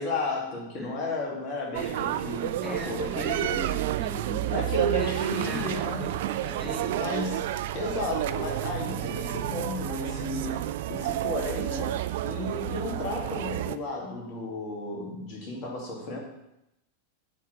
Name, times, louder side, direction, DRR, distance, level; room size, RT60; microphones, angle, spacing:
voice 1, 0.0-3.7 4.4-6.1 6.6-7.5 7.7-16.2, left 2 dB, 40° left, -2 dB, 2.4 m, -33 dB
sound 1, 1.7-13.8, right 14 dB, 55° right, 0.3 m, -30 dB
voice 2, 2.6-4.6 4.9-7.5, right 1 dB, ahead, 0 dB, 0.7 m, -40 dB
7.1 x 4.4 x 6.1 m, 0.85 s
figure-of-eight pair, 90°, 0 cm